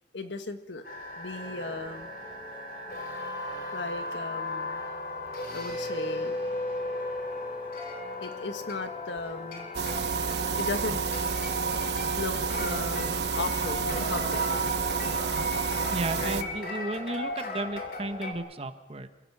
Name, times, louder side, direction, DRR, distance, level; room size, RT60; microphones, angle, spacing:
voice 1, 0.1-0.8 1.2-2.1 3.7-4.8 5.5-6.4 8.2-9.7 10.6-11.0 12.2-14.4 16.2-16.5, left 3 dB, 85° left, 8 dB, 1.8 m, -36 dB
sound 1, 0.8-18.3, left 2 dB, 55° left, 3.2 m, -37 dB
sound 2, 1.6-18.2, left 1 dB, 10° right, 3.7 m, -49 dB
sound 3, 9.7-16.4, right 5 dB, 70° right, 1.2 m, -29 dB
voice 2, 15.9-19.1, right 2 dB, 35° right, 9 dB, 1.2 m, -34 dB
29.0 x 17.0 x 6.1 m, 1.1 s
head